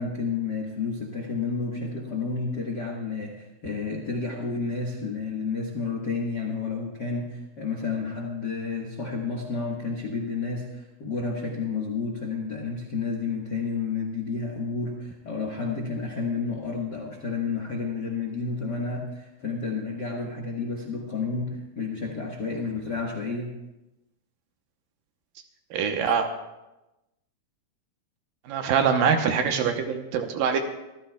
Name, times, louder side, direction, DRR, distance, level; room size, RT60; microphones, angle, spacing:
voice 1, 0.0-23.5, left 4 dB, 65° left, -1 dB, 1.0 m, -31 dB
voice 2, 25.7-26.3 28.5-30.6, right 6 dB, 75° right, 5 dB, 2.5 m, -24 dB
24.5 x 14.0 x 2.3 m, 0.99 s
omnidirectional pair, 4.3 m